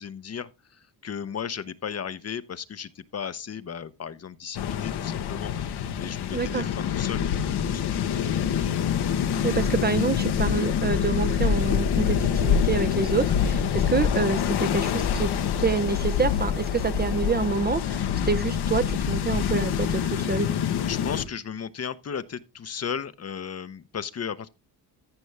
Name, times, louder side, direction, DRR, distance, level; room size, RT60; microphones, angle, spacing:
voice 1, 0.0-5.5 6.0-7.9 20.9-24.5, left 7 dB, 40° left, 0.8 m, -35 dB
sound 1, 4.5-21.2, left 8 dB, 70° left, 1.1 m, -26 dB
voice 2, 6.3-6.7 9.4-15.3 15.6-20.5, right 4 dB, 25° right, 0.6 m, -27 dB
14.5 x 5.2 x 3.4 m
cardioid pair, 75°, 41 cm